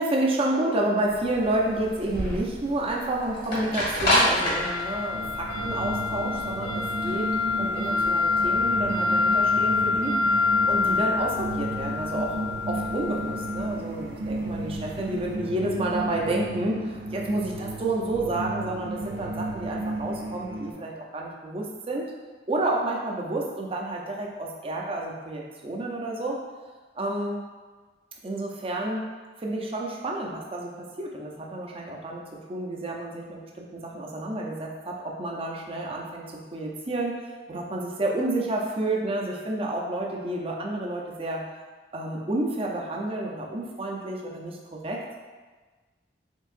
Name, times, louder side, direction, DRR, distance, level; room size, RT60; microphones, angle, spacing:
voice 1, 0.0-7.3 7.6-12.4 12.7-22.1 22.5-26.4 27.0-27.4 28.2-29.0 29.4-41.4 41.9-45.0, right 2 dB, 30° right, -1 dB, 0.5 m, -30 dB
sound 1, 1.1-15.2, left 3 dB, 50° left, 1.4 m, -26 dB
sound 2, 5.1-20.7, right 1 dB, 75° right, 0.5 m, -33 dB
4.6 x 3.6 x 2.5 m, 1.4 s
head